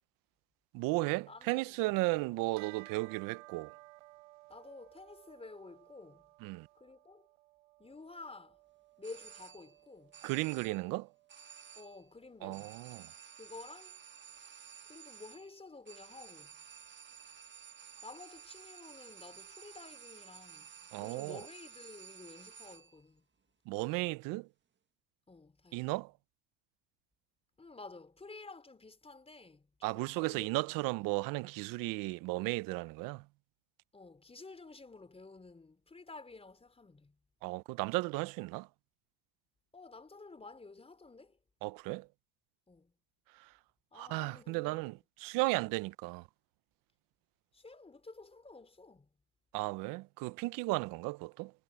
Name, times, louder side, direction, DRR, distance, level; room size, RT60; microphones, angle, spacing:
voice 1, 0.7-3.7 6.4-6.7 10.2-11.1 12.4-13.1 20.9-21.4 23.7-24.5 25.7-26.1 29.8-33.2 37.4-38.7 41.6-42.1 43.9-44.9 45.2-46.2 49.5-51.5, right 23 dB, 60° right, 1.0 m, -35 dB
voice 2, 1.3-1.8 4.5-6.3 6.7-7.3 7.8-8.6 9.0-10.2 11.8-12.8 13.3-14.0 14.9-16.5 18.0-20.7 21.0-23.2 25.3-26.0 27.6-31.1 32.7-32.8 33.9-37.2 39.7-41.4 42.7-42.9 43.9-45.0 45.5-45.7 47.5-49.1, left 3 dB, 15° left, 4.1 m, -52 dB
Bell, 2.6-12.2, right 19 dB, 85° right, 5.5 m, -58 dB
sound 1, 9.0-9.8 10.1-10.9 11.3-12.1 12.5-23.0, right 8 dB, 30° right, 1.8 m, -53 dB
hypercardioid pair, 90°, 37 cm